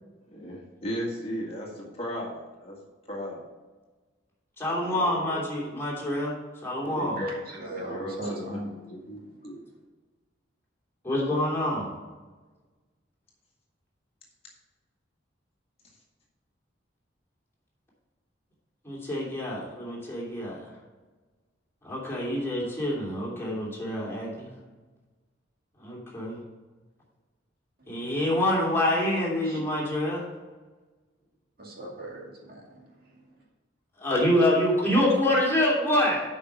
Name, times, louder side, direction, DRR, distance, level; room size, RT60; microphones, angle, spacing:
voice 1, 0.3-2.8 3.1-3.4 4.7-5.5 6.8-7.3 7.9-9.6, equal, 30° left, -2 dB, 1.8 m, -36 dB
voice 2, 4.6-6.3 6.6-7.2 11.0-11.9 18.8-20.6 21.8-24.5 25.8-26.4 27.9-30.2 34.0-36.2, left 1 dB, 15° left, -5 dB, 2.9 m, -26 dB
voice 3, 7.2-8.7 9.3-9.6 27.8-28.0 29.4-29.6 31.6-33.4, right 1 dB, 50° right, -3 dB, 2.3 m, -39 dB
8.5 x 5.5 x 6.1 m, 1.3 s
head